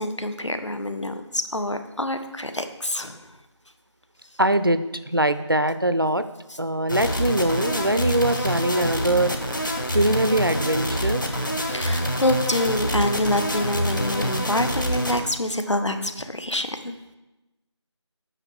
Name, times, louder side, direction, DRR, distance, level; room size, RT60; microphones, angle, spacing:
voice 1, 0.0-3.2 11.2-11.4 11.7-16.9, left 1 dB, 75° left, 8 dB, 1.4 m, -26 dB
voice 2, 4.4-6.2 6.6-9.3 9.6-11.2, right 1 dB, 50° right, 12 dB, 0.6 m, -22 dB
sound 1, 6.9-15.2, equal, 40° left, 1.4 m, -26 dB
8.9 x 6.4 x 6.5 m, 1.0 s
figure-of-eight pair, 180°, 15 cm